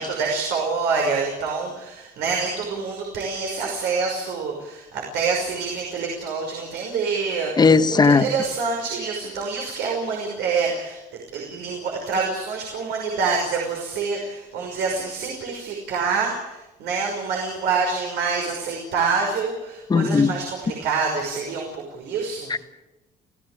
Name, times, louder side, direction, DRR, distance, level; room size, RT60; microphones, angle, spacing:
voice 1, 0.0-22.6, right 4 dB, 80° right, 0 dB, 5.7 m, -26 dB
voice 2, 7.6-8.2 19.9-20.3 22.5-22.6, left 4 dB, 25° left, 10 dB, 1.4 m, -16 dB
29.5 x 16.5 x 8.5 m, 1.0 s
cardioid pair, 110°, 17 cm